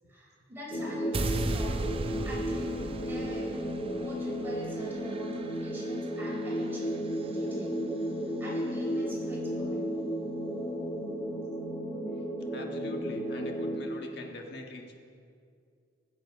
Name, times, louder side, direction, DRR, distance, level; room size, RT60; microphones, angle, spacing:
voice 1, 0.1-1.8 2.2-7.8 8.4-9.9, equal, 10° right, -5 dB, 4.0 m, -44 dB
sound 1, 0.7-13.8, equal, 20° left, 1.7 m, -33 dB
sound 2, 1.1-7.3, right 2 dB, 30° right, 0.6 m, -37 dB
voice 2, 12.5-15.0, left 2 dB, 60° left, 2 dB, 1.6 m, -43 dB
19.5 x 8.0 x 5.1 m, 2.3 s
head